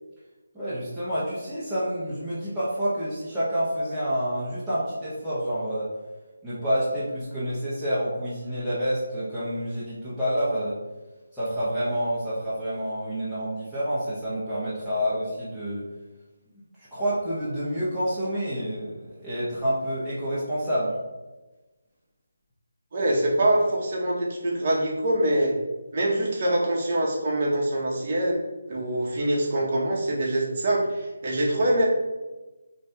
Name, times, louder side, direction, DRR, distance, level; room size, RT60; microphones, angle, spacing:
voice 1, 0.5-5.9 6.4-10.8 11.3-15.8 16.8-21.0, equal, ahead, -16 dB, 0.6 m, -28 dB
voice 2, 22.9-25.5 25.9-28.4 28.7-31.8, right 1 dB, 35° right, -2 dB, 0.7 m, -24 dB
4.9 x 2.6 x 2.2 m, 1.1 s
figure-of-eight pair, 170°, 0 cm